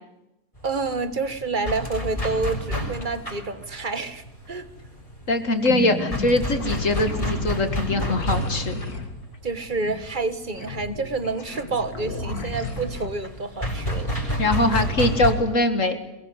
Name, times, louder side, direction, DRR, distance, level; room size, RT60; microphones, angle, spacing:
sound 1, 0.6-15.3, equal, 20° left, 6.6 m, -31 dB
voice 1, 0.6-4.7 9.4-14.4 14.7-14.8, right 3 dB, 30° right, 12 dB, 1.5 m, -29 dB
voice 2, 5.3-8.8 14.4-16.0, left 2 dB, 55° left, 9 dB, 2.2 m, -22 dB
sound 2, 5.6-13.1, left 2 dB, 70° left, 2.9 m, -33 dB
22.0 x 21.5 x 9.7 m, 0.91 s
omnidirectional pair, 1.7 m